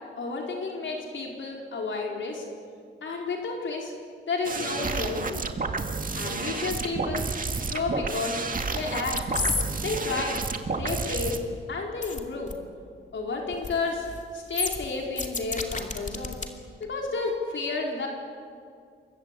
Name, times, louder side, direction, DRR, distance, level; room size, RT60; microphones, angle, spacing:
voice 1, 0.2-2.4 3.0-3.9 4.3-5.5 6.1-7.3 7.7-8.4 8.7-9.2 9.8-10.4 10.8-11.4 11.7-12.5 13.1-14.1 14.3-16.4 16.8-18.1, left 3 dB, 70° left, 0 dB, 4.5 m, -31 dB
sound 1, 4.4-11.4, right 4 dB, 40° right, 2.1 m, -30 dB
sound 2, 8.6-8.8 9.1-9.6 9.9-10.4 12.0-12.2 12.5-12.6 13.5-13.8 14.1-14.2 14.5-16.5 16.8-16.9, left 3 dB, 35° left, 2.6 m, -30 dB
28.5 x 24.0 x 8.5 m, 2.2 s
wide cardioid pair, 130°, 21 cm